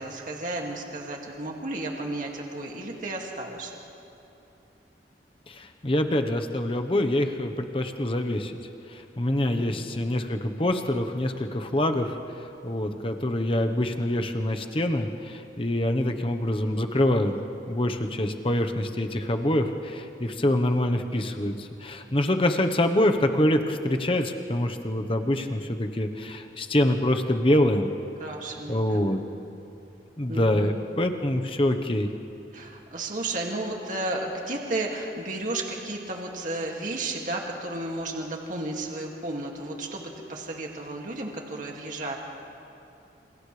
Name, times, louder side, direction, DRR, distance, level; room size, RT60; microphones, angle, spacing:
voice 1, 0.0-3.7 9.5-9.8 28.2-29.1 30.3-30.7 32.5-42.2, right 2 dB, 45° right, 0 dB, 2.3 m, -33 dB
voice 2, 5.5-8.5 8.9-12.2 12.6-17.3 17.7-27.9 28.7-29.2 30.2-32.1, left 1 dB, 30° left, 5 dB, 1.1 m, -25 dB
28.5 x 28.5 x 3.4 m, 2.9 s
head